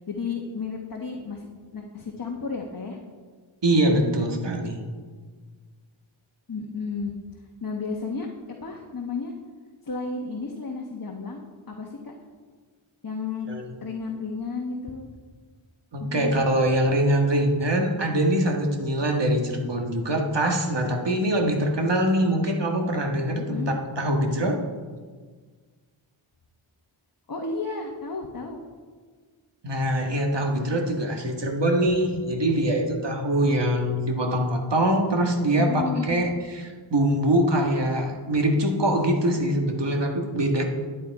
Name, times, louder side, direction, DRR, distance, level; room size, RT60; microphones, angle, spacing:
voice 1, 0.1-1.5 1.7-3.0 6.5-7.1 7.6-8.3 8.6-9.3 9.8-11.4 11.7-12.1 13.0-13.5 13.8-15.1 16.0-16.4 23.4-23.8 27.3-28.6 35.6-36.2, left 4 dB, 45° left, 0 dB, 1.1 m, -32 dB
voice 2, 3.6-4.8 13.5-13.6 15.9-23.6 24.0-24.6 29.6-40.6, right 1 dB, 55° right, 2 dB, 1.6 m, -23 dB
11.0 x 8.6 x 4.7 m, 1.5 s
wide cardioid pair, 70°, 50 cm